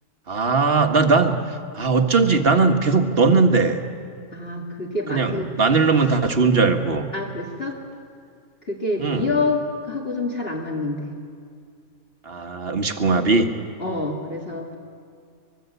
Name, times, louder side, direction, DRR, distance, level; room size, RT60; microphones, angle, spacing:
voice 1, 0.3-3.8 5.1-7.1 9.0-9.4 12.2-13.5, right 4 dB, 40° right, 5 dB, 1.7 m, -19 dB
voice 2, 4.3-5.5 7.1-7.8 8.6-11.1 13.8-14.7, left 3 dB, 40° left, -3 dB, 2.7 m, -27 dB
24.5 x 22.0 x 8.2 m, 2.2 s
omnidirectional pair, 1.6 m